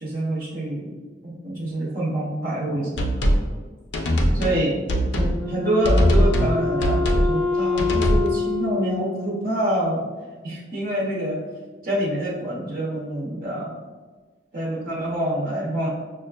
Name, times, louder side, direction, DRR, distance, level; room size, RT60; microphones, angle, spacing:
voice 1, 0.0-0.9 1.2-3.0 4.3-4.8 5.2-10.0 10.4-11.4 11.8-13.7 14.5-15.9, right 1 dB, 50° right, -4 dB, 0.6 m, -26 dB
sound 1, 3.0-3.5 3.9-4.6 4.9-5.3 5.8-6.5 6.8-7.3 7.8-8.3, equal, 70° left, 0.5 m, -20 dB
Wind instrument woodwind instrument, 5.4-9.9, left 4 dB, 5° right, 0.7 m, -27 dB
6.1 x 2.3 x 2.2 m, 1.4 s
head